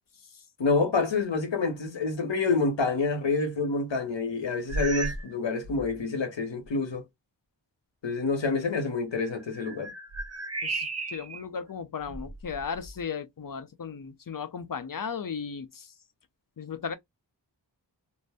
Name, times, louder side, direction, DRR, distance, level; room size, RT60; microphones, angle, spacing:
voice 1, 0.6-7.0 8.0-9.9, left 4 dB, 85° left, 0.9 m, -27 dB
sound 1, 4.7-5.3 5.6-6.0 6.6-6.7 9.1-11.4 12.0-13.0, right 2 dB, 35° right, 0.6 m, -35 dB
voice 2, 10.6-15.9 16.6-17.0, left 6 dB, 50° left, 0.6 m, -36 dB
2.5 x 2.1 x 3.3 m
wide cardioid pair, 45°, 43 cm